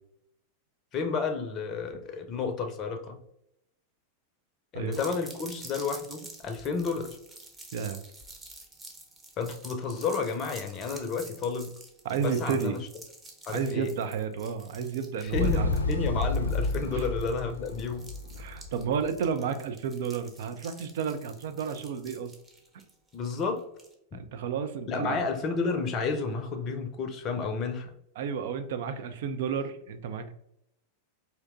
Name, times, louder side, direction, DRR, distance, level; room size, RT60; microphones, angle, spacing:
voice 1, 0.9-3.2 4.7-7.2 9.4-11.7 12.2-12.8 13.5-13.9 15.2-18.1 23.1-23.6 24.1-24.2 24.9-27.9, left 4 dB, 30° left, 5 dB, 0.6 m, -31 dB
sound 1, 4.9-23.9, right 2 dB, 15° right, 0.7 m, -49 dB
voice 2, 7.7-8.0 12.0-12.8 13.5-15.7 16.9-17.1 18.3-22.3 24.1-25.3 28.2-30.3, right 6 dB, 55° right, 8 dB, 0.4 m, -32 dB
Motorcycle, 15.3-19.2, left 2 dB, 80° left, 0.5 m, -30 dB
4.4 x 2.8 x 2.5 m, 0.78 s
figure-of-eight pair, 90°, 0 cm